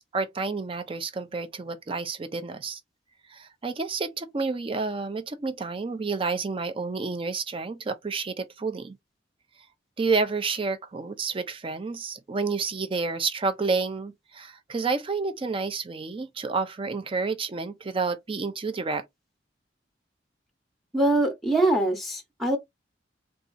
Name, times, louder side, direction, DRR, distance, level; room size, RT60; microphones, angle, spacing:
voice 1, 0.0-2.8 3.3-9.0 10.0-19.0, right 4 dB, 30° right, 0.4 m, -30 dB
voice 2, 20.9-22.6, right 2 dB, ahead, 0.7 m, -23 dB
4.0 x 2.3 x 2.5 m
head